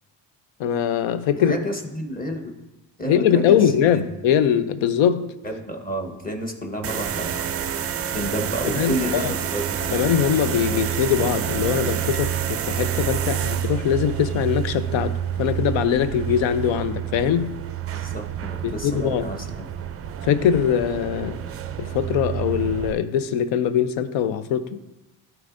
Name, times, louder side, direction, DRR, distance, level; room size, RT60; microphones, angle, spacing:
voice 1, 0.6-1.6 3.0-5.3 8.7-9.3 9.9-15.1 15.4-17.6 18.6-19.3 20.2-21.4 21.8-24.8, left 8 dB, 80° left, 0.6 m, -22 dB
voice 2, 1.3-2.5 3.0-4.0 5.4-7.5 8.1-10.2 17.9-19.7, equal, 20° left, 1.1 m, -30 dB
sound 1, 6.8-22.9, right 9 dB, 35° right, 0.4 m, -28 dB
12.0 x 4.6 x 2.6 m
cardioid pair, 90°, 46 cm